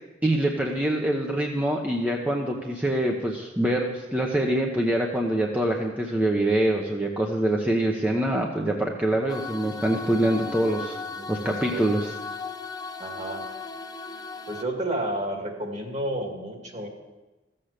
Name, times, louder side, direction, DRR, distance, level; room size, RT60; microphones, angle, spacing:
voice 1, 0.2-11.0 11.3-12.0, right 1 dB, 10° right, -1 dB, 0.9 m, -25 dB
sound 1, 9.3-14.6, left 4 dB, 20° left, 0.6 m, -36 dB
voice 2, 11.2-12.0 13.0-13.5 14.5-16.9, right 1 dB, 40° right, 1 dB, 2.2 m, -31 dB
14.5 x 7.8 x 6.6 m, 1.1 s
head